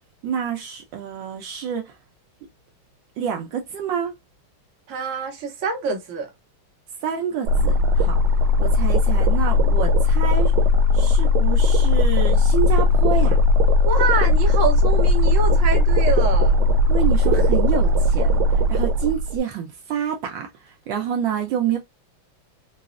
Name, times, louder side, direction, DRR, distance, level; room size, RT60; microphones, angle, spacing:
voice 1, 0.2-1.9 3.2-4.2 7.0-8.2 8.6-10.5 10.9-13.4 16.9-18.4 18.7-21.8, right 8 dB, 75° right, 1.2 m, -28 dB
voice 2, 4.9-6.3 13.8-16.7, right 5 dB, 55° right, 1.0 m, -26 dB
sound 1, 7.5-19.4, left 2 dB, 90° right, 1.4 m, -18 dB
4.0 x 2.0 x 2.3 m
omnidirectional pair, 2.2 m